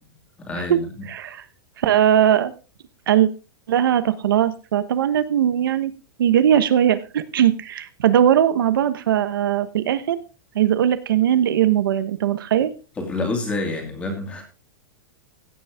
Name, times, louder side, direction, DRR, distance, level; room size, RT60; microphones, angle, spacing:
voice 1, 0.4-0.9 13.0-14.4, left 2 dB, 10° left, 3 dB, 2.4 m, -27 dB
voice 2, 1.1-1.4 1.8-2.5 3.1-3.3 3.7-5.9 6.2-10.2 10.5-12.7, right 10 dB, 75° right, 12 dB, 1.2 m, -19 dB
16.5 x 7.2 x 3.6 m, 0.32 s
supercardioid pair, 180°, 12 cm